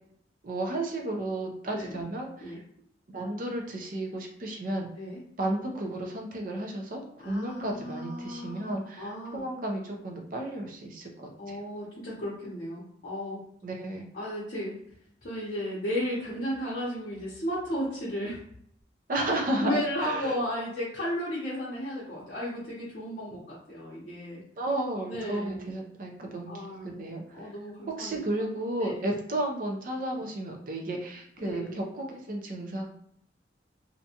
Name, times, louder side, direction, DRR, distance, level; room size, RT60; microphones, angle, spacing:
voice 1, 0.4-2.6 3.1-4.9 5.4-11.6 13.6-14.1 19.1-20.3 24.6-27.2 27.9-32.8, right 1 dB, 50° right, 1 dB, 0.5 m, -33 dB
voice 2, 1.7-2.0 2.4-2.6 5.0-5.2 7.2-9.4 11.4-13.4 14.1-14.8 15.2-18.4 19.6-24.4 25.1-25.7 26.5-27.0 27.3-28.2 28.8-29.1 31.4-31.8, equal, 50° left, -9 dB, 0.7 m, -34 dB
2.6 x 2.2 x 2.7 m, 0.68 s
head